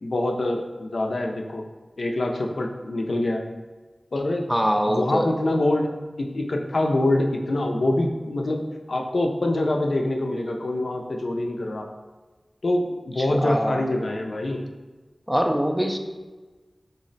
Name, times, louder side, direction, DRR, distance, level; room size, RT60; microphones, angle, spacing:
voice 1, 0.0-1.6 2.0-3.4 4.1-4.5 4.9-5.9 6.2-11.9 12.6-14.7, left 1 dB, 80° left, 2 dB, 0.4 m, -25 dB
voice 2, 4.5-5.3 13.2-13.8 15.3-16.0, equal, 5° right, 4 dB, 0.3 m, -23 dB
3.9 x 2.0 x 3.8 m, 1.3 s
wide cardioid pair, 50°, 0 cm